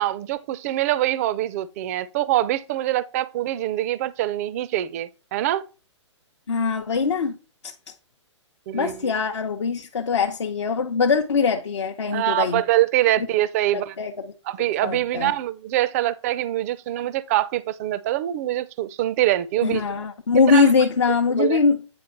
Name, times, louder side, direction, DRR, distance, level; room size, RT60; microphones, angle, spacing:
voice 1, 0.0-5.6 8.7-9.1 12.1-14.0 14.5-19.8 20.5-20.7 21.4-21.6, right 14 dB, 30° right, 0.4 m, -24 dB
voice 2, 6.5-7.4 7.6-7.7 8.7-12.6 13.7-14.3 14.6-15.3 19.6-21.8, left 5 dB, 65° left, 0.7 m, -22 dB
8.8 x 3.4 x 4.4 m
figure-of-eight pair, 120°, 16 cm